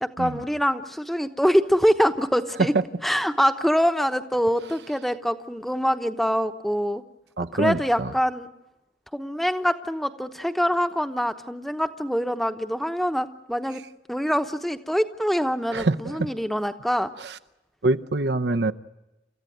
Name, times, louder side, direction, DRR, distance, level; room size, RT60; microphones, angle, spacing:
voice 1, 0.0-2.7 3.0-7.0 7.5-8.5 9.1-13.8 14.1-17.1, equal, ahead, 8 dB, 0.9 m, -24 dB
voice 2, 7.4-8.1 15.7-16.3 17.2-17.4 17.8-18.7, right 2 dB, 70° right, 9 dB, 0.8 m, -25 dB
30.0 x 15.0 x 9.2 m, 0.99 s
head